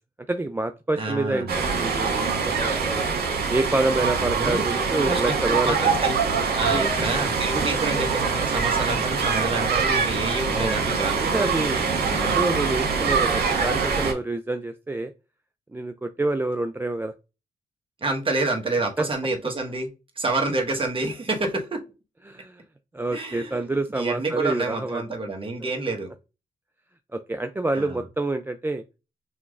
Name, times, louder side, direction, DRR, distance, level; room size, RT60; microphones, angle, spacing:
voice 1, 0.3-3.0 3.5-5.8 6.7-6.9 10.5-10.9 11.2-11.9 12.3-15.1 15.7-17.1 19.0-19.1 22.3-22.6 22.9-25.0 27.1-28.8, right 2 dB, 15° right, 0.4 m, -27 dB
voice 2, 1.0-1.5 4.4-4.6 5.0-6.2 6.5-11.3 12.1-12.5 18.0-19.9 20.2-21.8 23.1-23.6 23.9-26.1 27.7-28.0, right 2 dB, 35° right, 1.3 m, -28 dB
sound 1, 1.5-14.1, right 5 dB, 80° right, 1.5 m, -24 dB
5.7 x 3.1 x 2.5 m
cardioid pair, 70°, 16 cm